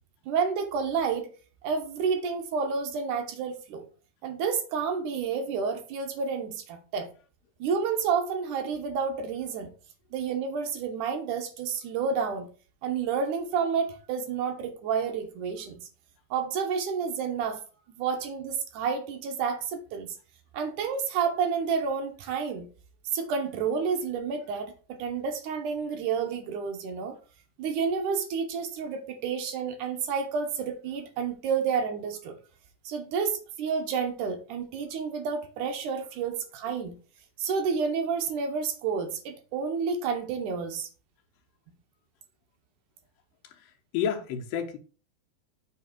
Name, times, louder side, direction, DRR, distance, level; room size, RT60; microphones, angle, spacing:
voice 1, 0.3-1.3 1.6-3.9 4.2-7.1 7.6-9.7 10.1-12.5 12.8-15.9 16.3-17.6 18.0-20.2 20.5-22.7 23.1-27.2 27.6-32.4 32.8-36.9 37.4-40.9, right 6 dB, 70° right, 2.3 m, -30 dB
voice 2, 43.4-44.8, left 8 dB, 85° left, 2.7 m, -31 dB
7.2 x 3.4 x 5.9 m
omnidirectional pair, 4.0 m